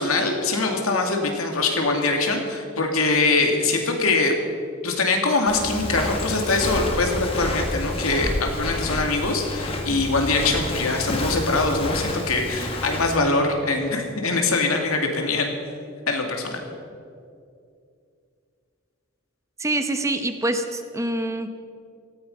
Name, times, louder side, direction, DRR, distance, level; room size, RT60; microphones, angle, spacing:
voice 1, 0.0-4.4 4.8-15.5 16.1-16.6, left 3 dB, 90° left, 3 dB, 2.4 m, -23 dB
Walk footsteps, 5.5-13.2, left 1 dB, 25° left, 1.6 m, -29 dB
voice 2, 19.6-21.5, right 1 dB, 15° right, 7 dB, 0.8 m, -25 dB
17.5 x 14.5 x 5.4 m, 2.4 s
head